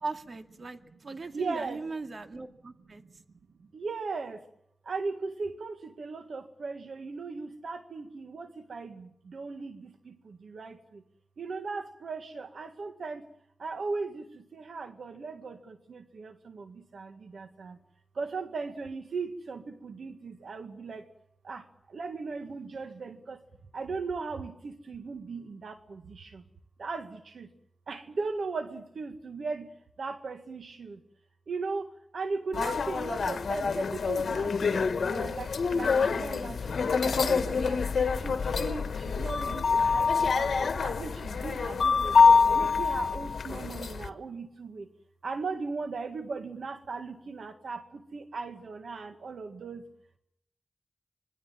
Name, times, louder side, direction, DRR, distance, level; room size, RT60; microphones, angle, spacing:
voice 1, 0.0-3.0, right 3 dB, 60° right, 7 dB, 2.3 m, -39 dB
voice 2, 1.3-1.8 2.9-3.1 3.6-4.4 4.9-11.0 11.4-13.3 13.6-17.8 18.2-21.1 21.4-23.4 23.7-26.4 26.8-27.5 27.9-29.7 30.0-31.0 31.5-37.8 38.1-42.2 42.5-44.9 45.2-49.9, right 4 dB, 85° right, 7 dB, 1.7 m, -38 dB
sound 1, 32.5-44.1, left 5 dB, 85° left, 1.3 m, -26 dB
26.0 x 21.5 x 7.5 m, 0.75 s
cardioid pair, 60°, 0 cm